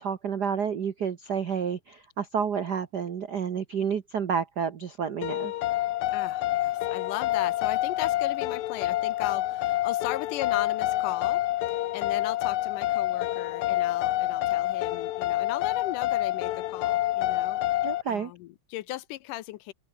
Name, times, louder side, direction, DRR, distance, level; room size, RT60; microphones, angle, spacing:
voice 1, 0.0-5.5 17.8-18.3, right 7 dB, 80° right, 0.9 m, -30 dB
sound 1, 5.2-18.0, left 15 dB, 75° left, 2.1 m, -27 dB
voice 2, 6.1-11.4 11.7-17.6 18.1-19.7, left 16 dB, 90° left, 2.5 m, -37 dB
open air
omnidirectional pair, 3.6 m